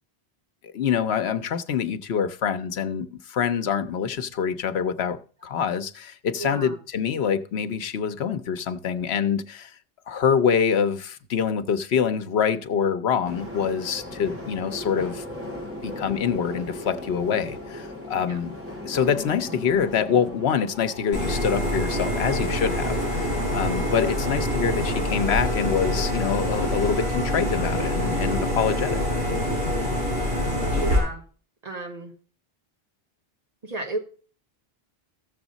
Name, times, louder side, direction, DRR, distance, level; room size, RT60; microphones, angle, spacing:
voice 1, 0.7-9.7 10.1-15.2 15.8-18.6 18.8-29.0, left 7 dB, 90° left, 1.0 m, -25 dB
voice 2, 6.4-6.8 18.2-18.4 30.8-31.2 31.6-32.1 33.6-34.0, right 2 dB, 40° right, 1.6 m, -33 dB
sound 1, 13.2-25.4, left 1 dB, 15° right, 3.3 m, -38 dB
sound 2, 21.1-31.0, left 1 dB, 85° right, 7.4 m, -25 dB
14.0 x 7.2 x 4.0 m
omnidirectional pair, 1.0 m